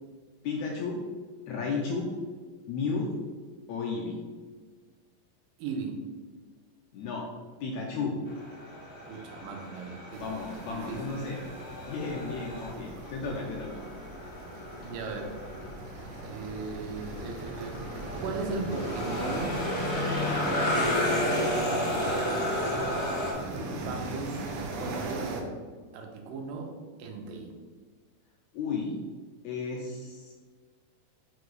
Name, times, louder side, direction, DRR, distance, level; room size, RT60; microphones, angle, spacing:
voice 1, 0.4-1.0 1.5-2.1 2.7-3.1 3.7-4.2 6.9-7.3 7.6-8.2 10.2-11.5 11.9-13.8 28.5-29.0 29.4-30.3, left 4 dB, 75° left, -1 dB, 1.8 m, -33 dB
voice 2, 5.6-6.0 9.1-10.2 10.7-11.2 14.8-15.4 16.2-17.9 18.2-19.6 20.1-22.9 23.3-23.5 23.8-25.4 25.9-26.7 27.0-27.5, right 4 dB, 90° right, 2 dB, 2.5 m, -37 dB
sound 1, 8.3-23.3, left 1 dB, 30° left, 1.3 m, -33 dB
sound 2, 10.1-25.4, right 2 dB, 70° right, 1.7 m, -40 dB
5.7 x 4.8 x 3.9 m, 1.5 s
omnidirectional pair, 3.8 m